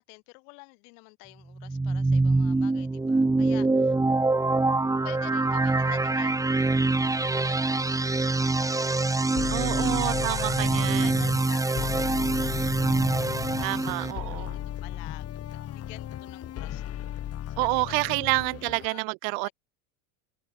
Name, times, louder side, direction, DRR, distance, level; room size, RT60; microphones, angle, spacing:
voice 1, 0.0-4.0 5.0-6.8 7.2-14.5 14.8-16.8 17.4-17.9 18.3-19.0 19.4-19.5, left 40 dB or more, 65° left, 6.4 m, -49 dB
sound 1, 1.6-14.1, right 3 dB, 5° right, 1.1 m, -25 dB
sound 2, 7.1-7.3 9.4-11.4 11.8-18.9, left 11 dB, 30° left, 1.3 m, -35 dB
voice 2, 9.5-11.1 13.6-14.6 17.6-19.5, right 40 dB or more, 55° right, 0.5 m, -28 dB
supercardioid pair, 110°, 45 cm